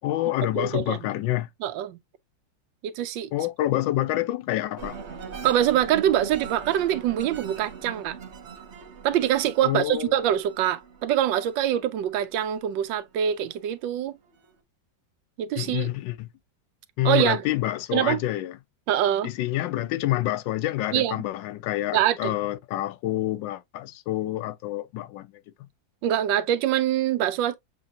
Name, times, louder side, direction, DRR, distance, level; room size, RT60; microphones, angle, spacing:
voice 1, 0.0-1.5 3.3-5.0 9.6-10.2 15.6-16.3 17.0-18.6 19.2-25.4, left 14 dB, 85° left, 1.3 m, -27 dB
voice 2, 0.5-1.0 1.6-2.0 2.8-3.3 5.4-8.2 9.0-14.2 15.4-15.9 17.0-17.4 17.9-18.2 18.9-19.3 20.9-21.1 21.9-22.3 26.0-27.6, right 11 dB, 85° right, 1.3 m, -24 dB
sound 1, 4.8-13.6 14.0-14.5, right 6 dB, 45° right, 1.0 m, -41 dB
6.8 x 2.9 x 2.6 m
omnidirectional pair, 2.0 m